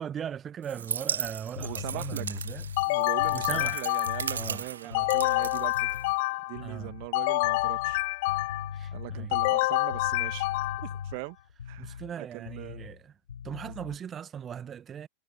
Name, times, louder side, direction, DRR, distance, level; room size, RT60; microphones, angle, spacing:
voice 1, 0.0-2.6 3.3-3.8 4.3-5.2 6.6-6.9 8.7-9.3 11.8-13.1 13.4-15.1, right 8 dB, 25° right, 1.2 m, -39 dB
sound 1, 0.6-6.3, right 7 dB, 70° right, 0.6 m, -37 dB
sound 2, 1.2-6.2 6.5-7.1 7.4-12.1 12.5-13.0 13.3-14.0, left 7 dB, 70° left, 5.3 m, -40 dB
voice 2, 1.6-2.3 2.8-5.9 6.5-8.0 8.9-10.5 10.8-11.4 11.6-12.9 13.7-13.8, right 35 dB, 45° right, 1.5 m, -40 dB
sound 3, 2.8-4.4 4.9-6.6 7.1-8.8 9.3-11.0, left 23 dB, 50° left, 0.3 m, -27 dB
figure-of-eight pair, 90°, 0 cm